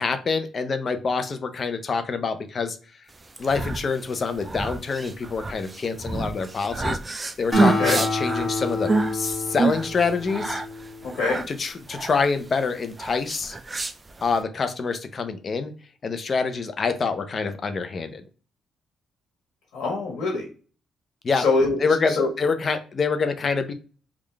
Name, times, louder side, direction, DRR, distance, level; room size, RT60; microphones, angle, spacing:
voice 1, 0.0-2.8 3.4-7.0 7.4-10.6 11.5-13.6 14.2-15.7 16.0-18.2 21.2-21.5 21.8-23.7, left 4 dB, 40° left, 9 dB, 0.6 m, -26 dB
sound 1, 3.2-14.4, right 3 dB, 25° right, 0.4 m, -28 dB
Acoustic guitar, 7.5-11.2, left 1 dB, ahead, 1.4 m, -28 dB
voice 2, 11.0-11.4 19.7-20.5 21.4-21.8 22.1-22.3, left 3 dB, 75° left, -2 dB, 1.5 m, -23 dB
3.7 x 2.4 x 3.3 m, 0.38 s
cardioid pair, 90°, 0 cm